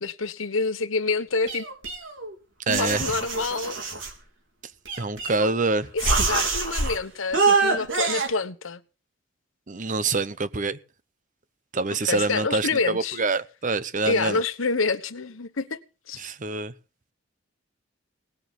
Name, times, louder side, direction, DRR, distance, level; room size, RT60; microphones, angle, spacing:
voice 1, 0.0-1.6 2.7-3.8 5.4-5.5 5.9-8.8 12.1-13.2 14.1-15.8 16.1-16.2, left 4 dB, 85° left, 1.1 m, -27 dB
sound 1, 1.5-2.3 2.7-4.1 4.9-5.6 6.0-7.0 7.3-8.3, right 4 dB, 70° right, 4.0 m, -25 dB
voice 2, 2.7-3.2 5.0-5.9 9.7-10.8 11.7-14.4 16.2-16.7, right 3 dB, 40° right, 0.8 m, -26 dB
19.0 x 6.8 x 8.2 m
head